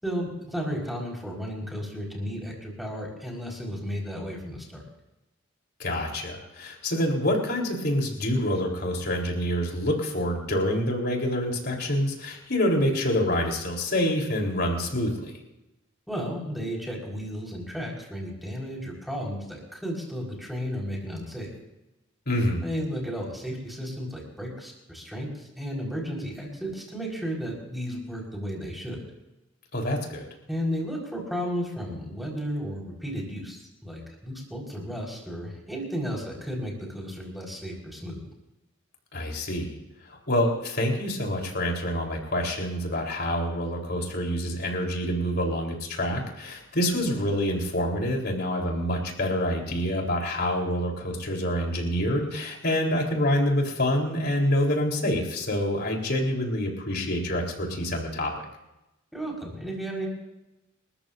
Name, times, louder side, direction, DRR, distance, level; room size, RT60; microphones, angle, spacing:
voice 1, 0.0-4.8 16.1-21.5 22.6-29.0 30.5-38.3 59.1-60.1, equal, ahead, -2 dB, 4.5 m, -33 dB
voice 2, 5.8-15.4 22.3-22.6 29.7-30.3 39.1-39.7 40.1-58.3, left 1 dB, 55° left, 0 dB, 3.7 m, -27 dB
29.5 x 14.0 x 2.6 m, 0.96 s
head